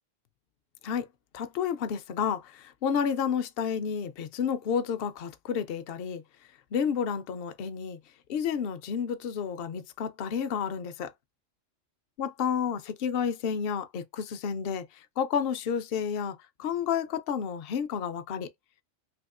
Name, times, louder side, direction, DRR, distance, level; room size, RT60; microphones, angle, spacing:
voice 1, 1.3-6.2 6.7-8.0 8.3-11.1 12.2-18.5, left 7 dB, 60° left, 0.7 m, -31 dB
3.5 x 2.9 x 2.4 m
omnidirectional pair, 1.3 m